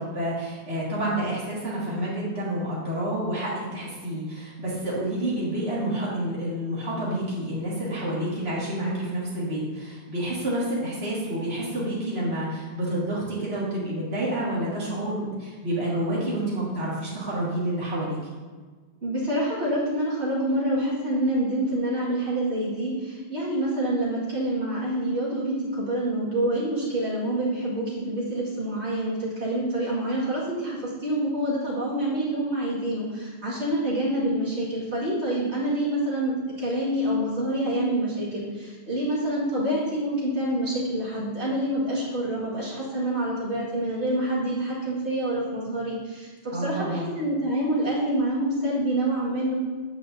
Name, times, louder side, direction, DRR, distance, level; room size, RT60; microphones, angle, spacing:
voice 1, 0.0-18.2 46.5-47.1, right 1 dB, 65° right, -7 dB, 2.3 m, -29 dB
voice 2, 19.0-49.5, right 1 dB, 80° right, -8 dB, 2.3 m, -27 dB
8.6 x 7.9 x 2.7 m, 1.4 s
omnidirectional pair, 1.1 m